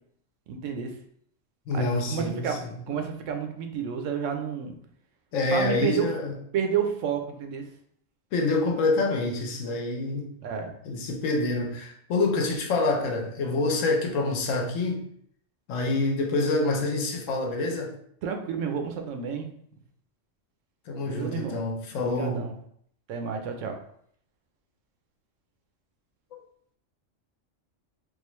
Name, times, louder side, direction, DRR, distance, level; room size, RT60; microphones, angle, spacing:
voice 1, 0.5-0.9 1.7-2.6 2.9-4.7 5.5-6.1 6.5-7.6 10.4-10.7 18.2-19.5 21.0-21.6 22.0-22.6 23.1-23.8, right 7 dB, 80° right, 4 dB, 0.9 m, -30 dB
voice 2, 1.7-2.7 5.3-6.3 8.3-10.3 10.8-15.1 15.7-17.9 20.9-22.4, left 2 dB, 85° left, 2 dB, 1.1 m, -27 dB
3.6 x 2.5 x 3.1 m, 0.66 s
omnidirectional pair, 1.3 m